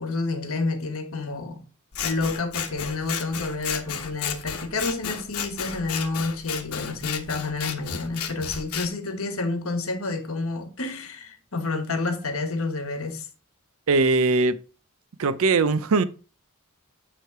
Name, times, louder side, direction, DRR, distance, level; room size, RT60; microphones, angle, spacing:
voice 1, 0.0-1.6 2.0-13.3, left 3 dB, 70° left, 1.3 m, -29 dB
Scissors, 1.9-8.9, left 7 dB, 85° left, 1.0 m, -33 dB
voice 2, 13.9-14.6 15.2-16.0, right 3 dB, 65° right, 0.5 m, -20 dB
9.3 x 3.2 x 4.5 m
head